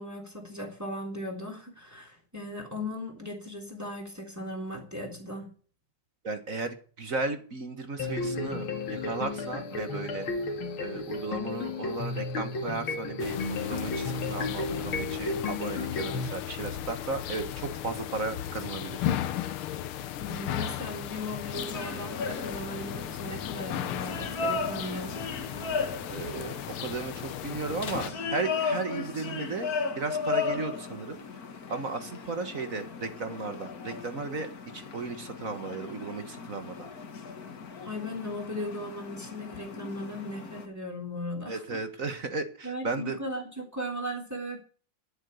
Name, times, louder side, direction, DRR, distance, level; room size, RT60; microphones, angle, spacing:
voice 1, 0.0-5.5 20.2-25.2 37.9-41.8 42.6-44.6, left 1 dB, 5° right, 2 dB, 3.7 m, -37 dB
voice 2, 6.2-10.3 10.8-19.1 26.1-31.2 31.7-34.5 34.7-36.9 41.5-43.2, right 3 dB, 45° right, 8 dB, 1.6 m, -35 dB
sound 1, 8.0-16.3, left 3 dB, 75° left, 2.8 m, -33 dB
sound 2, 13.2-28.1, left 11 dB, 90° left, 1.8 m, -36 dB
sound 3, 21.5-40.7, left 5 dB, 45° left, 1.9 m, -36 dB
11.0 x 9.0 x 8.2 m, 0.42 s
omnidirectional pair, 2.3 m